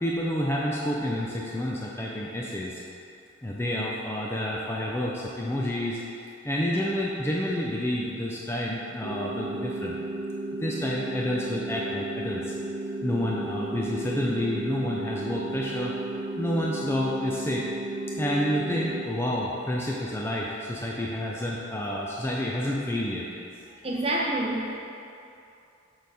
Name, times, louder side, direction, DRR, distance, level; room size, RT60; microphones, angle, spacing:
voice 1, 0.0-2.8 3.4-6.0 6.4-10.0 10.5-12.5 13.0-15.9 16.4-17.7 18.2-23.3, left 1 dB, 10° left, -4 dB, 0.4 m, -29 dB
sound 1, 9.0-19.0, right 2 dB, 50° right, 0.5 m, -34 dB
voice 2, 23.7-24.8, right 1 dB, 30° right, -3 dB, 0.8 m, -28 dB
6.7 x 4.0 x 4.8 m, 2.7 s
head